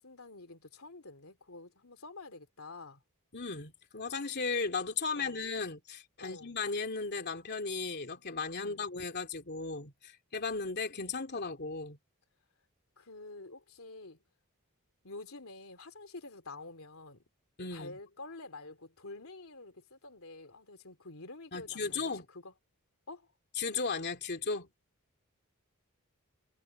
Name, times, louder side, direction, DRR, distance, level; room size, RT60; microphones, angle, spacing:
voice 1, 0.0-3.0 5.1-5.4 6.2-6.5 8.6-8.8 13.0-14.2 15.0-17.2 17.7-22.5 23.1-23.3, left 3 dB, 70° left, 3.4 m, -48 dB
voice 2, 3.3-12.0 17.6-18.0 21.5-22.3 23.6-24.7, left 4 dB, 50° left, 3.0 m, -36 dB
head